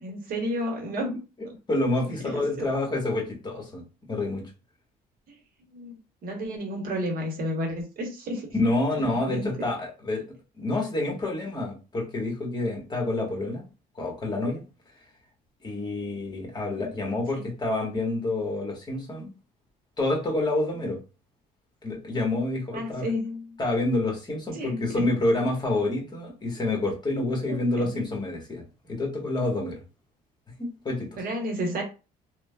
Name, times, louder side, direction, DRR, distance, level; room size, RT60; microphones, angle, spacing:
voice 1, 0.0-1.1 2.3-2.7 5.3-5.4 5.7-8.5 9.3-9.5 16.8-16.9 17.3-17.5 22.7-23.6 24.5-25.0 27.5-27.9 31.2-31.8, equal, 60° right, 2 dB, 1.0 m, -32 dB
voice 2, 1.7-3.8 4.1-4.5 8.5-10.2 10.5-13.7 14.0-14.6 15.6-19.3 20.0-21.0 21.8-23.1 23.6-29.8 30.6-31.2, left 2 dB, 25° left, -1 dB, 1.2 m, -28 dB
3.1 x 2.1 x 2.2 m, 0.31 s
cardioid pair, 110°, 17 cm